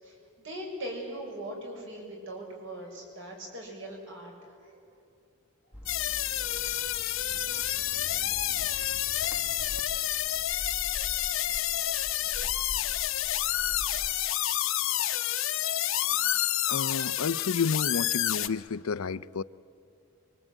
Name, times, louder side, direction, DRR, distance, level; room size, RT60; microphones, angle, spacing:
voice 1, 0.0-4.8, right 1 dB, 55° right, 6.9 m, -40 dB
sound 1, 5.7-14.2, equal, 10° right, 1.4 m, -45 dB
sound 2, 5.9-18.5, left 13 dB, 65° left, 0.9 m, -29 dB
voice 2, 16.7-19.4, left 5 dB, 80° left, 0.6 m, -30 dB
25.0 x 24.0 x 9.2 m
head